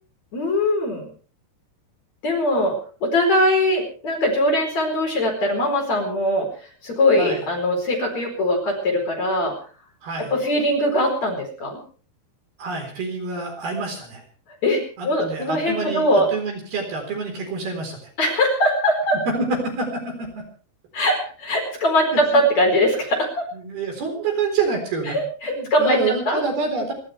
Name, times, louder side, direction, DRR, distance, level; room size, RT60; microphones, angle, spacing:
voice 1, 0.3-1.1 2.2-2.7 3.0-6.5 6.8-9.5 10.3-11.8 14.6-16.3 18.2-19.2 20.9-23.5 25.1-26.0 26.3-26.4, left 1 dB, 35° left, 1 dB, 5.4 m, -21 dB
voice 2, 10.0-10.3 12.6-14.2 15.0-16.1 16.3-18.0 19.4-20.5 22.1-22.4 23.5-25.2 25.6-26.9, right 4 dB, 55° right, 3 dB, 5.9 m, -27 dB
29.5 x 12.5 x 3.4 m, 0.40 s
omnidirectional pair, 5.4 m